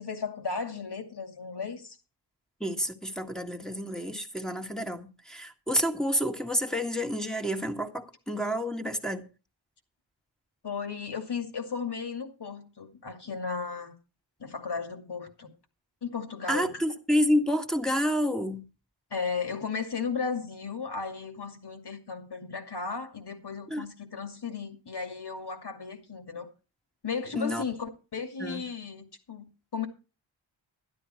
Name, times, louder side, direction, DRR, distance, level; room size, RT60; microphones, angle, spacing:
voice 1, 0.0-2.0 10.6-13.9 14.4-15.5 16.0-16.8 19.1-26.5 27.0-29.9, left 5 dB, 55° left, 2.5 m, -35 dB
voice 2, 2.6-9.3 16.5-18.6 23.7-23.8 27.3-27.6 28.4-28.6, equal, ahead, 1.7 m, -29 dB
12.0 x 12.0 x 4.4 m
wide cardioid pair, 110°, 47 cm